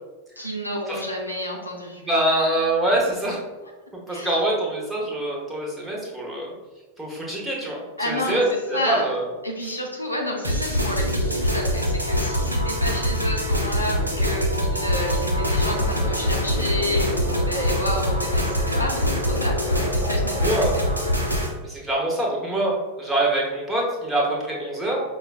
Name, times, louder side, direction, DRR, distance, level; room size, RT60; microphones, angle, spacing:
voice 1, 0.4-2.0 4.1-4.3 8.0-9.1 9.4-20.7, equal, 85° left, -1 dB, 0.6 m, -30 dB
voice 2, 2.0-3.4 4.1-6.5 7.0-9.3 9.6-9.8 20.4-20.7 21.6-25.0, right 1 dB, 10° right, -4 dB, 1.0 m, -24 dB
sound 1, 10.4-21.5, equal, 85° right, 0.7 m, -24 dB
sound 2, 15.6-21.1, left 2 dB, 25° left, 1.1 m, -35 dB
5.4 x 2.3 x 2.4 m, 1.2 s
figure-of-eight pair, 90°, 0 cm